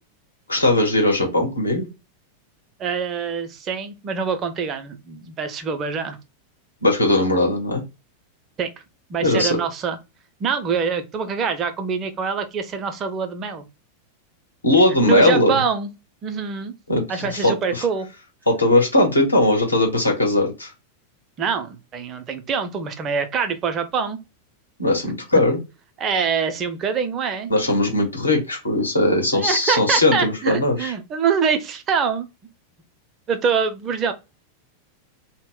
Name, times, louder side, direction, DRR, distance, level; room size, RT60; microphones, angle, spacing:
voice 1, 0.5-1.9 6.8-7.8 9.2-9.6 14.6-15.6 16.9-17.8 18.5-20.7 24.8-25.6 27.5-30.9, left 1 dB, 80° left, 1.0 m, -19 dB
voice 2, 2.8-6.2 8.6-8.7 9.1-10.0 10.4-13.6 15.0-15.9 16.2-16.7 17.1-18.1 21.4-24.2 26.0-27.5 29.3-32.3 33.3-34.1, right 6 dB, 30° right, 0.5 m, -24 dB
2.1 x 2.0 x 3.7 m
figure-of-eight pair, 90°, 0 cm